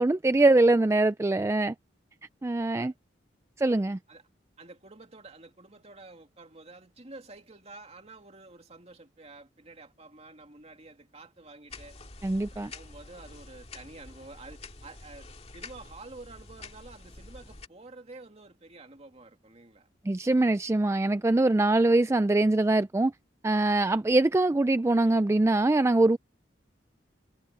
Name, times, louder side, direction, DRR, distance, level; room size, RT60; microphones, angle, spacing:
voice 1, 0.0-1.7 2.4-2.9 3.6-4.0 12.2-12.7 20.0-23.1 23.4-26.2, right 2 dB, 15° right, 0.3 m, -23 dB
voice 2, 4.6-12.0 12.4-15.3 15.5-19.9 21.2-21.5, right 2 dB, 35° right, 2.4 m, -49 dB
sound 1, 11.7-17.7, left 3 dB, 35° left, 2.1 m, -47 dB
head